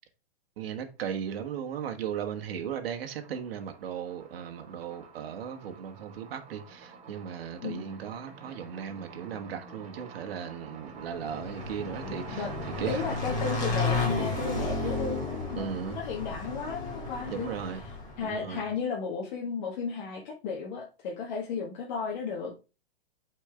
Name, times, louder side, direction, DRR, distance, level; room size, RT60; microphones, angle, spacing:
voice 1, 0.6-12.5 12.8-13.1 15.6-16.0 17.3-17.8 18.2-18.6, right 8 dB, 65° right, 1.4 m, -36 dB
sound 1, 1.6-2.1 2.4-17.6, right 5 dB, 20° right, 1.2 m, -47 dB
Motorcycle / Engine, 11.0-18.4, left 3 dB, 25° left, 2.8 m, -33 dB
voice 2, 11.9-12.5 12.9-17.5 18.2-22.5, left 5 dB, 50° left, 1.6 m, -34 dB
8.3 x 4.5 x 3.3 m
hypercardioid pair, 135°, 31 cm